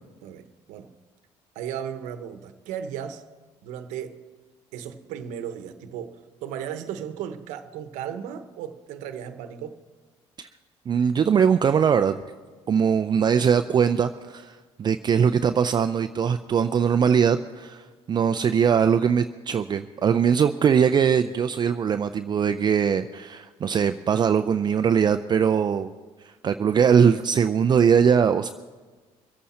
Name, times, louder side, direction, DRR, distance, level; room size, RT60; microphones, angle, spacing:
voice 1, 0.2-0.9 1.5-3.2 3.6-4.2 4.7-9.8, right 9 dB, 90° right, 9 dB, 0.9 m, -35 dB
voice 2, 10.9-12.2 12.7-25.9 26.2-28.5, right 7 dB, 35° right, 9 dB, 0.4 m, -21 dB
24.0 x 8.4 x 4.3 m, 1.3 s
cardioid pair, 100°, 12 cm